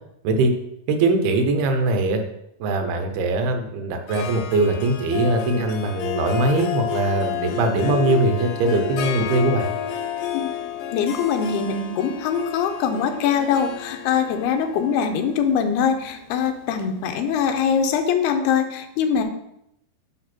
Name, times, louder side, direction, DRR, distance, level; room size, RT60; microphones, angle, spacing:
voice 1, 0.9-2.2 2.6-9.7, right 2 dB, 85° right, 5 dB, 2.9 m, -21 dB
Harp, 4.1-17.6, left 11 dB, 75° left, 2.1 m, -31 dB
voice 2, 10.9-19.2, left 7 dB, 90° left, 6 dB, 2.8 m, -22 dB
9.7 x 3.4 x 6.0 m, 0.79 s
omnidirectional pair, 4.5 m